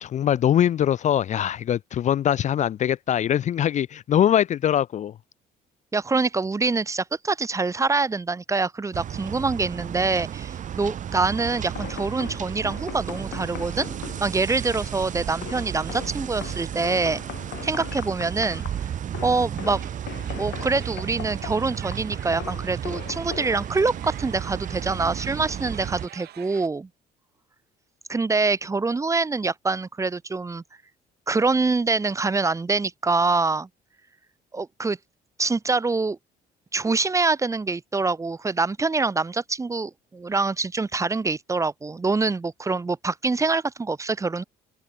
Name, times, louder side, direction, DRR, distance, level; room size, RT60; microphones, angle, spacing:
voice 1, 0.0-5.1, left 10 dB, 45° left, 0.5 m, -22 dB
voice 2, 5.9-13.9 14.2-17.2 17.6-18.9 19.2-19.8 20.4-26.9 28.1-30.6 31.3-33.7 34.5-35.0 35.4-36.2 36.7-44.4, right 3 dB, 20° right, 1.0 m, -25 dB
sound 1, 8.9-26.1, right 9 dB, 50° right, 1.3 m, -33 dB
sound 2, 11.5-24.5, left 15 dB, 75° left, 3.7 m, -41 dB
sound 3, 18.8-26.7, right 14 dB, 70° right, 5.4 m, -48 dB
open air
cardioid pair, 110°, 17 cm